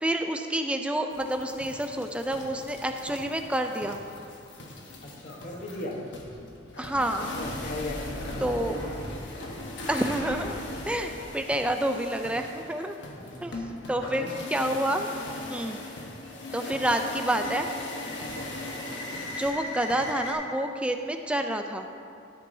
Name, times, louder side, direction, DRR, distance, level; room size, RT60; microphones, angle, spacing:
voice 1, 0.0-4.0 6.8-7.3 8.4-8.8 9.9-10.6 10.9-13.0 13.4-15.1 15.5-15.8 16.5-17.7 19.4-21.9, right 1 dB, 5° right, 5 dB, 0.4 m, -28 dB
sound 1, 1.1-20.3, left 2 dB, 60° left, 1.2 m, -39 dB
voice 2, 5.0-6.0 7.4-9.1 13.0-14.3 18.6-19.2, left 1 dB, 40° left, 0 dB, 1.1 m, -39 dB
13.0 x 8.3 x 2.7 m, 2.5 s
head